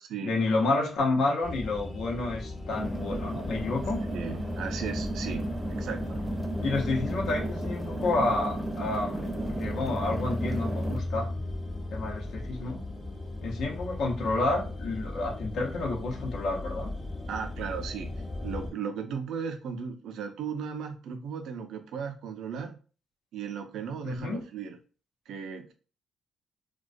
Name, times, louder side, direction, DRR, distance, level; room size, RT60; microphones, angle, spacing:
voice 1, 0.2-4.0 6.6-11.3 11.9-12.8 13.4-16.9 24.0-24.4, left 2 dB, 70° left, 0 dB, 0.7 m, -30 dB
sound 1, 1.4-18.7, left 2 dB, 25° left, 0.8 m, -36 dB
sound 2, 2.7-11.0, right 2 dB, 5° right, 0.6 m, -35 dB
voice 2, 4.1-6.2 17.3-18.1 18.4-22.8 23.3-24.8 25.3-25.7, right 6 dB, 75° right, 6 dB, 0.4 m, -36 dB
2.2 x 2.2 x 2.5 m, 0.36 s
cardioid pair, 90°, 0 cm